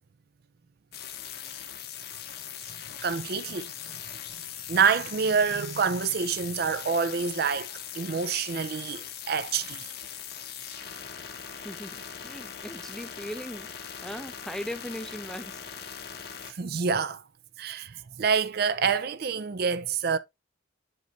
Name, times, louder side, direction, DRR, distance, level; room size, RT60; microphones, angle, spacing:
sound 1, 0.9-16.5, left 8 dB, 50° left, 1.0 m, -40 dB
voice 1, 3.0-3.7 4.7-9.8 16.5-17.2 17.6-20.2, right 6 dB, 50° right, 0.4 m, -27 dB
voice 2, 11.5-13.7 14.0-15.6, equal, 5° left, 0.5 m, -39 dB
7.7 x 4.0 x 3.2 m
head